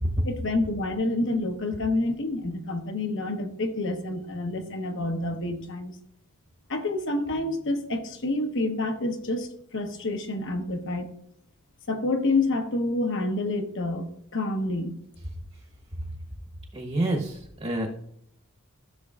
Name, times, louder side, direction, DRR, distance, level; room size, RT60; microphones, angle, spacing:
voice 1, 0.2-5.9 6.7-11.1 11.9-14.1 14.3-15.0, left 2 dB, 55° left, 5 dB, 1.0 m, -28 dB
voice 2, 16.7-17.9, right 1 dB, 30° right, 0 dB, 1.1 m, -27 dB
13.5 x 6.4 x 2.4 m, 0.71 s
head